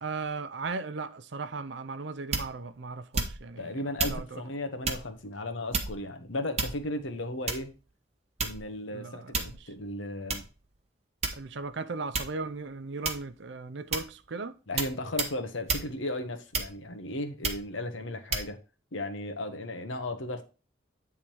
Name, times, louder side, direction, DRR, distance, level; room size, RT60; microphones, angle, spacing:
voice 1, 0.0-4.4 8.9-9.6 11.4-14.5, right 4 dB, 65° right, 0.6 m, -37 dB
sound 1, 2.3-2.7 3.1-3.6 4.0-4.2 4.8-5.1 5.7-6.1 6.6-7.0 7.5-7.8 8.4-8.8 9.3-9.6 10.3-10.4 11.2-11.6 12.1-12.4 13.0-13.4 13.9-14.2 14.8-14.9 15.2-15.4 15.7-15.9 16.5-16.9 17.4-17.7 18.3-18.5, right 4 dB, 35° right, 1.0 m, -31 dB
voice 2, 3.6-7.7 8.4-10.4 14.7-18.6 18.9-20.4, left 1 dB, 85° left, 1.1 m, -35 dB
8.8 x 3.7 x 4.5 m
head